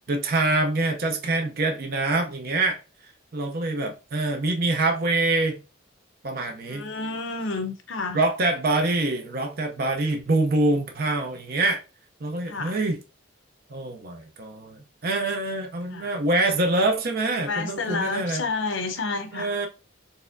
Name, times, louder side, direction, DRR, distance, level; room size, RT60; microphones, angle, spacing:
voice 1, 0.1-2.8 3.3-5.6 6.2-6.9 8.1-11.8 12.2-13.0 13.7-18.4 19.3-19.7, right 2 dB, 50° right, 0.6 m, -25 dB
voice 2, 6.6-8.2 12.5-12.8 15.9-16.2 17.4-19.5, left 4 dB, 70° left, 0.7 m, -30 dB
4.1 x 3.4 x 2.5 m
head